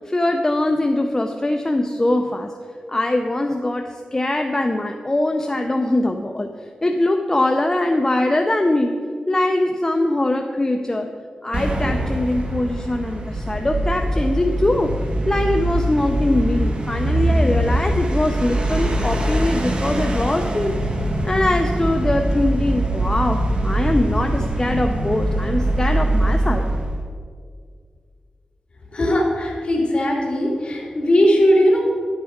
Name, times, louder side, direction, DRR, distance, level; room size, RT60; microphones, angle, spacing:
voice 1, 0.1-2.5 2.9-6.5 6.8-8.9 9.3-11.1 11.4-14.9 15.3-20.7 21.2-26.7, left 1 dB, 20° left, 4 dB, 0.5 m, -22 dB
sound 1, 11.5-27.0, right 1 dB, 40° right, 1.4 m, -22 dB
voice 2, 28.9-31.8, equal, 45° left, -3 dB, 3.0 m, -18 dB
11.0 x 8.0 x 5.0 m, 2.1 s
wide cardioid pair, 95°, 3 cm